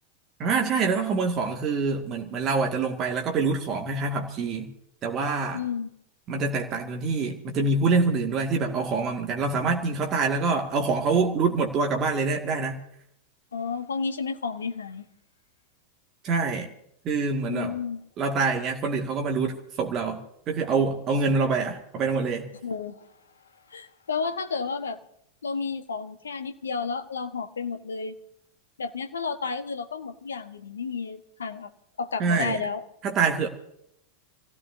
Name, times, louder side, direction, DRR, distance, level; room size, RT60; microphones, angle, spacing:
voice 1, 0.4-4.7 5.0-5.6 6.3-12.8 16.2-16.7 17.0-17.7 18.2-20.2 20.5-22.5 32.2-32.6 33.0-33.5, right 4 dB, 30° right, 2 dB, 2.0 m, -25 dB
voice 2, 5.5-5.9 13.5-15.0 17.5-18.0 22.6-23.1 23.7-25.0 25.4-28.1 28.8-31.7 32.0-32.8, left 5 dB, 70° left, 9 dB, 1.2 m, -31 dB
27.5 x 16.0 x 2.7 m, 0.75 s
figure-of-eight pair, 90°, 0 cm